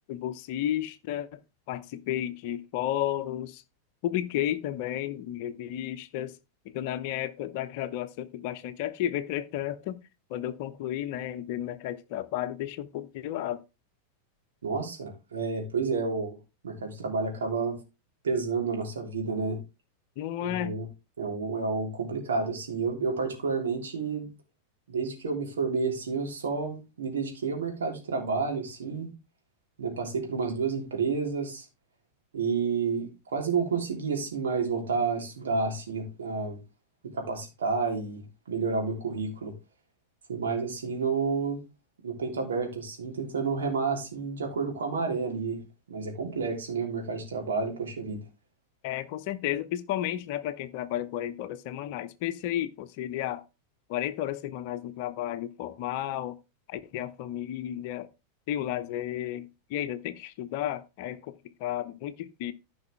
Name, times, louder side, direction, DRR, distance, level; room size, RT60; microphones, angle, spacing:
voice 1, 0.1-1.4 1.7-3.6 4.0-6.4 6.6-10.0 10.3-13.6 20.2-20.7 48.8-53.4 53.9-56.4 56.7-58.1 58.5-61.3 61.6-62.5, left 12 dB, 45° left, 0.8 m, -32 dB
voice 2, 14.6-16.4 16.6-17.8 18.2-19.6 20.4-20.9 21.2-24.3 24.9-29.1 29.8-31.7 32.3-36.6 37.1-39.5 40.3-41.6 42.0-45.6 45.9-48.2, right 4 dB, 65° right, 3.4 m, -30 dB
14.5 x 5.4 x 3.5 m
figure-of-eight pair, 90°, 0 cm